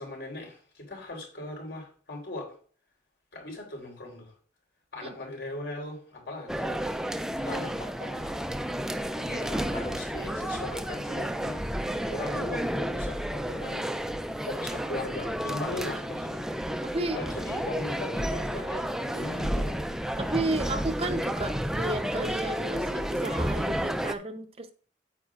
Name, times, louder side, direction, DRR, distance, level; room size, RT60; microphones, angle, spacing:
voice 1, 0.0-2.5 3.3-4.3 4.9-6.7 7.4-8.3 9.1-11.6 12.1-13.9 14.4-16.4 17.1-19.8, left 2 dB, 75° left, 0 dB, 3.8 m, -39 dB
sound 1, 6.5-24.1, equal, 5° right, 0.3 m, -31 dB
voice 2, 20.2-24.7, right 2 dB, 35° right, 9 dB, 0.6 m, -32 dB
9.0 x 8.7 x 2.4 m, 0.42 s
head